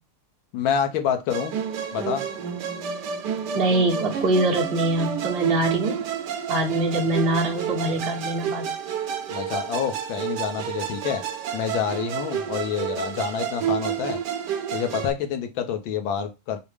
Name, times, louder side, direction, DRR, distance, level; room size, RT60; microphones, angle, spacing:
voice 1, 0.5-1.5 1.9-2.2 9.3-11.2 11.5-14.2 14.7-16.6, left 8 dB, 70° left, 1.5 m, -27 dB
Musical instrument, 1.3-15.1, right 8 dB, 65° right, 1.1 m, -30 dB
voice 2, 3.5-6.0 6.5-8.7, right 1 dB, 45° right, 0.7 m, -23 dB
5.1 x 2.1 x 4.8 m
omnidirectional pair, 2.4 m